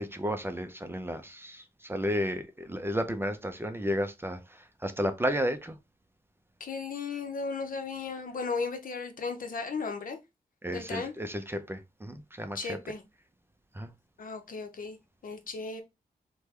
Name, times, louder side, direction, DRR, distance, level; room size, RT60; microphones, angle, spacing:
voice 1, 0.0-5.8 10.6-12.8 13.8-13.9, equal, 15° right, 0.5 m, -33 dB
voice 2, 6.6-10.2 10.7-11.1 12.5-13.0 14.2-15.0 15.2-15.8, left 4 dB, 65° left, 0.7 m, -35 dB
3.3 x 2.2 x 3.1 m
cardioid pair, 55°, 15 cm